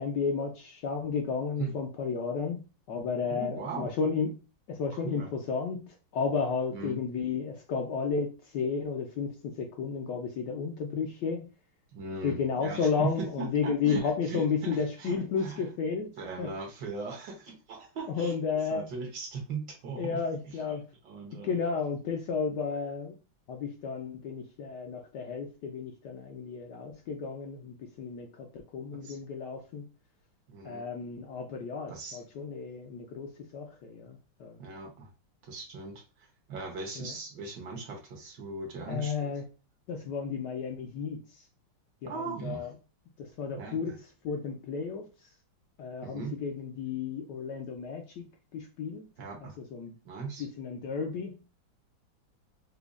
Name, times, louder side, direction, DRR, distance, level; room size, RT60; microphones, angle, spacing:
voice 1, 0.0-4.4 4.7-11.5 12.2-16.1 16.4-16.5 18.1-18.9 20.0-20.8 21.3-23.2 23.5-29.8 30.6-34.6 37.0-37.1 38.9-39.4 39.9-41.2 42.0-42.7 43.2-44.0 44.2-45.1 45.8-49.0 49.7-49.9 50.4-51.6, left 5 dB, 70° left, 2 dB, 1.1 m, -33 dB
voice 2, 3.3-3.9 4.9-5.3 6.7-7.0 11.9-15.6 16.2-20.2 20.4-20.8 21.0-21.5 29.0-29.2 30.5-30.8 31.9-32.2 34.6-35.1 35.4-39.3 42.0-42.7 43.6-43.9 46.0-46.4 49.2-49.6 50.0-50.4, right 4 dB, 65° right, 1 dB, 1.4 m, -39 dB
5.0 x 2.3 x 2.4 m, 0.32 s
omnidirectional pair, 2.2 m